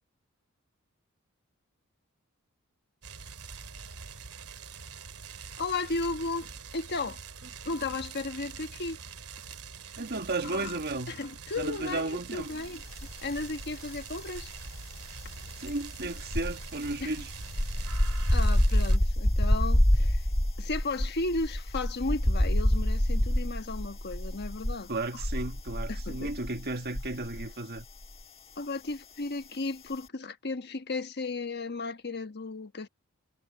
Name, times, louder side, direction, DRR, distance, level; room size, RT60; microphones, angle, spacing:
sound 1, 3.0-19.0, right 5 dB, 90° right, 2.4 m, -44 dB
voice 1, 5.6-7.2 7.6-9.0 10.4-10.7 11.1-12.8 13.2-14.5 17.0-17.1 18.3-20.2 20.6-25.2 25.9-26.3 28.6-32.9, left 3 dB, 50° left, 1.3 m, -34 dB
voice 2, 10.0-11.2 11.6-12.5 15.6-17.3 23.3-23.4 24.9-27.9, right 2 dB, 45° right, 1.7 m, -34 dB
sound 2, 12.9-13.7 14.0-27.5 27.8-28.1, equal, 25° left, 1.6 m, -27 dB
head